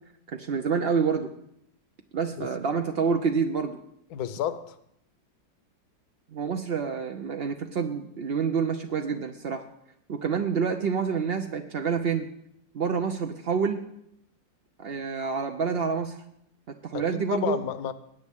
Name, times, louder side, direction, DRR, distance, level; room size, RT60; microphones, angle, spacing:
voice 1, 0.3-1.3 2.1-3.8 6.3-9.6 10.1-12.3 12.7-13.8 14.8-16.2 16.8-17.6, right 6 dB, 65° right, 0.5 m, -27 dB
voice 2, 4.1-4.8 16.9-17.9, left 9 dB, 65° left, 1.2 m, -31 dB
21.0 x 9.5 x 3.6 m
omnidirectional pair, 2.0 m